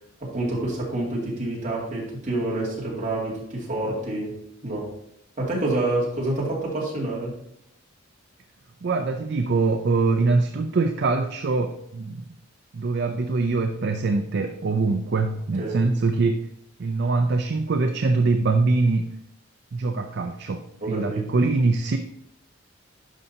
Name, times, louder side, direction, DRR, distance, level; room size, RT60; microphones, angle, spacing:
voice 1, 0.2-4.9 5.4-7.4 15.6-15.8 20.8-21.3, right 2 dB, 35° right, -5 dB, 2.5 m, -28 dB
voice 2, 8.8-12.2 12.7-16.5 16.8-19.1 19.7-22.0, right 3 dB, 55° right, 7 dB, 0.4 m, -23 dB
11.0 x 5.3 x 2.8 m, 0.75 s
head